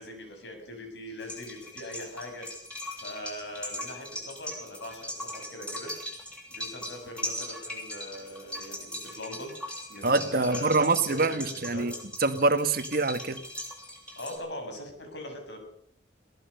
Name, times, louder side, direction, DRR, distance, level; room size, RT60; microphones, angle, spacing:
voice 1, 0.0-2.5 3.0-5.9 6.5-9.5 9.9-11.9 14.2-15.6, left 1 dB, 70° left, 5 dB, 7.3 m, -41 dB
sound 1, 1.2-14.4, equal, 5° left, 7.6 m, -40 dB
voice 2, 10.0-11.9 12.2-13.4, right 3 dB, 55° right, 9 dB, 1.6 m, -25 dB
22.5 x 18.0 x 6.8 m, 0.62 s
head